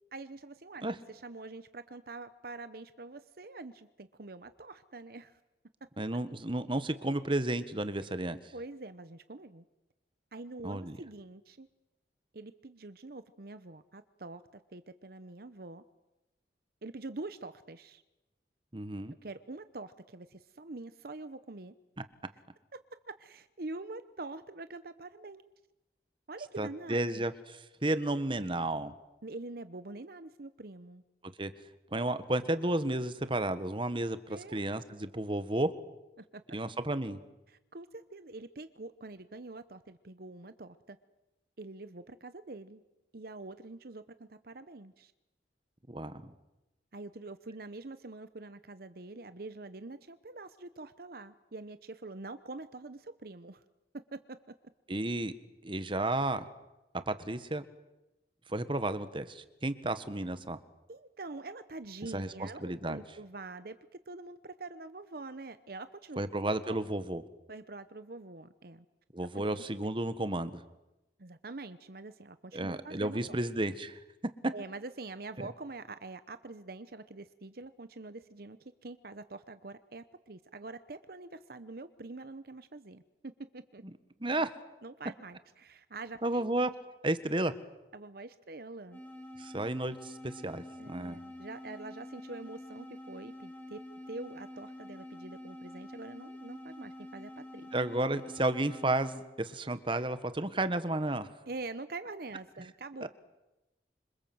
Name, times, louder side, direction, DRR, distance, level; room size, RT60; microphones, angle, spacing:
voice 1, 0.1-5.4 8.5-9.6 10.3-11.7 12.3-15.8 16.8-18.0 19.2-21.7 23.1-25.4 26.3-27.2 29.2-31.0 34.3-34.6 36.2-36.6 37.5-41.0 41.6-42.8 43.1-45.1 46.9-53.6 53.9-54.5 60.9-63.8 64.1-66.8 67.5-68.9 69.2-69.9 71.2-73.4 74.5-83.8 84.8-86.5 87.9-89.0 90.8-93.8 94.1-97.7 101.5-103.1, right 3 dB, 55° right, 12 dB, 0.9 m, -45 dB
voice 2, 6.0-8.4 10.6-11.0 18.7-19.1 26.6-27.3 27.8-28.9 31.4-31.5 31.9-35.7 36.5-37.2 45.9-46.3 54.9-55.3 55.6-56.4 57.1-57.6 58.5-60.6 62.1-63.0 66.2-67.2 69.1-70.6 72.5-74.0 75.4-75.5 84.2-84.5 86.2-86.7 87.0-87.5 89.4-91.2 97.7-101.3, right 1 dB, 30° right, 12 dB, 1.4 m, -32 dB
sound 1, 88.9-99.3, left 1 dB, 10° left, 5.3 m, -47 dB
26.5 x 26.5 x 7.9 m, 0.99 s
head